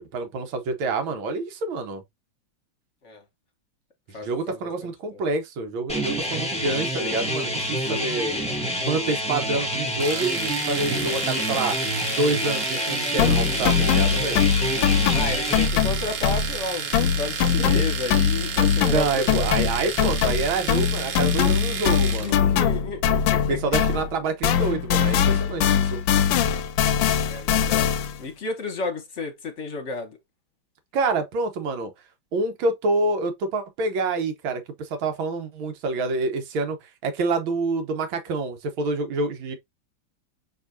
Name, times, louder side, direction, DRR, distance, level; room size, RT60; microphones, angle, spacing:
voice 1, 0.0-2.0 4.1-8.4 8.8-11.8 12.1-14.4 17.6-17.8 18.8-22.4 23.5-26.0 30.9-31.9 32.3-39.6, right 3 dB, 85° right, 1.8 m, -27 dB
voice 2, 4.1-5.2 15.1-19.5 22.1-23.6 27.3-30.2, left 3 dB, 45° left, 1.1 m, -33 dB
sound 1, 5.9-15.7, equal, 5° left, 0.8 m, -28 dB
Domestic sounds home sounds, 10.0-22.3, right 6 dB, 55° right, 1.1 m, -32 dB
sound 2, 13.2-16.7 16.9-24.2 24.4-28.2, left 8 dB, 75° left, 1.3 m, -22 dB
6.2 x 3.1 x 2.7 m
omnidirectional pair, 2.2 m